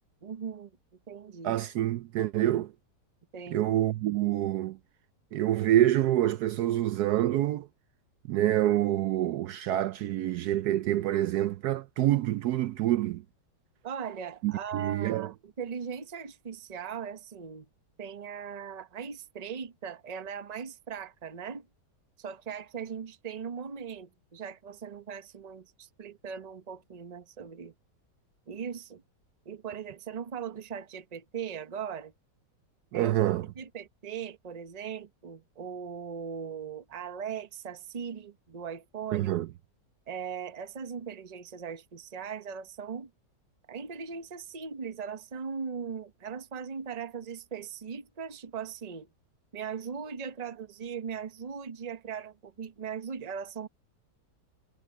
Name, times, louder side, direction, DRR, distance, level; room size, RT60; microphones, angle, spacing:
voice 1, 0.2-0.7 1.1-1.6 3.3-3.6 13.8-17.7 18.0-21.7 22.2-27.7 28.5-29.0 29.5-32.1 32.9-33.1 33.6-39.3 40.1-43.1 43.7-49.1 49.5-53.7, right 7 dB, 30° right, 0.8 m, -39 dB
voice 2, 1.4-2.7 3.5-4.8 5.3-7.7 8.3-13.2 14.4-15.3 32.9-33.5 39.1-39.5, right 13 dB, 70° right, 1.0 m, -27 dB
omnidirectional pair, 1.9 m